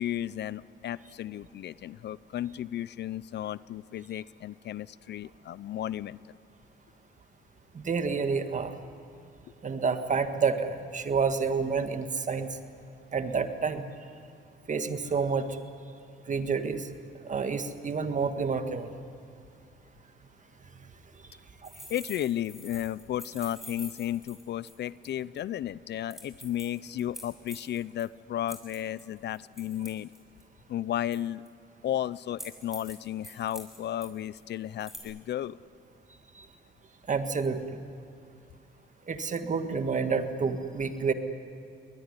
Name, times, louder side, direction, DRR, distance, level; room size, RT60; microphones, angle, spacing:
voice 1, 0.0-6.2 21.9-30.1 30.7-31.4 31.8-35.6, left 11 dB, 60° left, 19 dB, 0.5 m, -34 dB
voice 2, 7.7-8.7 9.6-12.5 13.1-13.9 14.7-15.5 16.3-16.8 17.2-18.9 36.3-36.5 37.1-37.8 39.1-41.1, right 5 dB, 40° right, 8 dB, 1.7 m, -29 dB
sound 1, 21.6-25.1 25.4-25.5 26.1-28.0 28.5-30.4 31.1-31.5 32.4-32.9 33.2-34.1 34.4-34.5 34.8-35.0, equal, ahead, 6.4 m, -45 dB
23.0 x 20.0 x 9.9 m, 2.4 s
cardioid pair, 90°, 20 cm